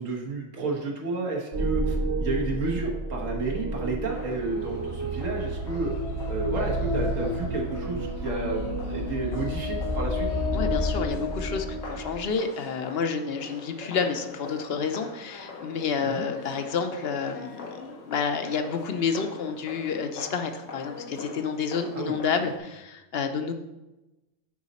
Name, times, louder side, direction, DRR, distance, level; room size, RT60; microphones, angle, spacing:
voice 1, 0.0-5.9 6.3-10.3 16.0-16.3 21.9-22.2, right 3 dB, 85° right, -1 dB, 1.5 m, -31 dB
sound 1, 1.5-12.3, equal, 25° right, 0.8 m, -30 dB
sound 2, 4.1-22.6, left 3 dB, 85° left, 1.4 m, -44 dB
voice 2, 10.5-23.5, left 6 dB, 60° left, 7 dB, 0.8 m, -29 dB
9.6 x 4.1 x 4.1 m, 1.0 s
omnidirectional pair, 1.3 m